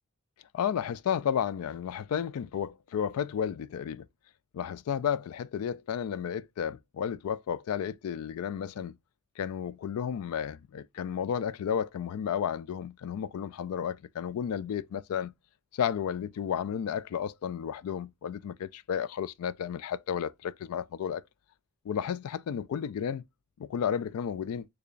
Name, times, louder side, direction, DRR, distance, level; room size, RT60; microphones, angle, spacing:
voice 1, 0.5-4.1 4.5-9.0 9.4-15.3 15.7-21.2 21.9-23.2 23.6-24.7, left 8 dB, 75° left, 0.3 m, -32 dB
6.6 x 2.3 x 2.5 m
head